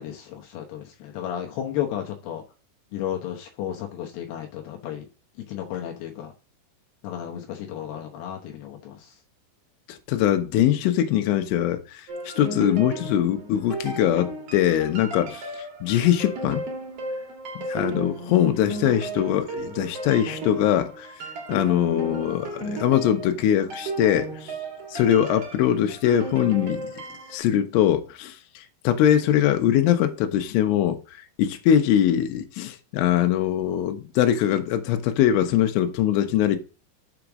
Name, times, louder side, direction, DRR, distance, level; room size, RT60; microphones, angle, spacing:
voice 1, 0.0-2.4 2.9-5.1 5.5-6.3 7.0-9.2 15.2-15.3, left 10 dB, 75° left, 2.6 m, -33 dB
voice 2, 9.9-15.5 15.8-16.6 17.7-21.1 21.5-24.6 24.9-26.9 27.3-31.0 31.4-36.6, left 11 dB, 90° left, 3.3 m, -22 dB
sound 1, 12.1-27.4, right 2 dB, 60° right, 1.6 m, -35 dB
7.1 x 5.1 x 6.0 m
omnidirectional pair, 5.5 m